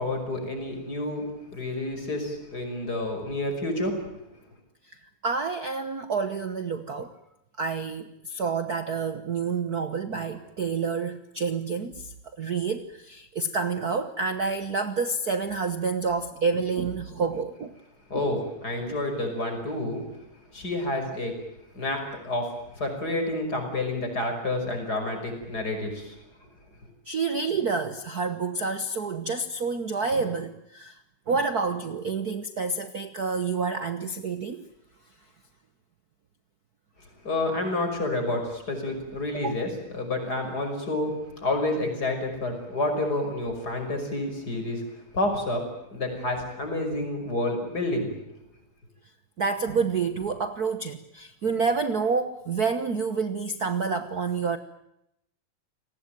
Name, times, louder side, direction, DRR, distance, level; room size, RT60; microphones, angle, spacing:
voice 1, 0.0-4.0 18.1-20.1 20.5-21.4 21.7-26.2 37.2-44.8 45.1-48.1, left 2 dB, 30° left, 5 dB, 6.2 m, -29 dB
voice 2, 5.2-7.1 7.6-17.7 18.1-18.3 27.1-31.0 31.3-34.6 39.3-39.5 49.4-54.6, right 4 dB, 90° right, 10 dB, 0.8 m, -28 dB
29.5 x 19.0 x 9.2 m, 0.80 s
omnidirectional pair, 3.5 m